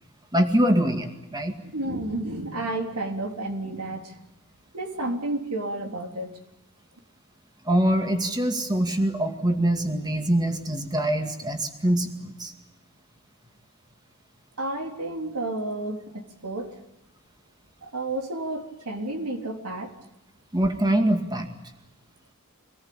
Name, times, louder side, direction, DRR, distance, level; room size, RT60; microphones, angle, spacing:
voice 1, 0.3-1.5 7.7-12.5 20.5-21.5, right 1 dB, 20° right, 5 dB, 2.1 m, -24 dB
voice 2, 1.6-4.2 4.7-6.3 14.6-16.8 17.8-19.9, right 2 dB, 85° right, 3 dB, 3.6 m, -31 dB
25.5 x 19.5 x 8.7 m, 0.96 s
head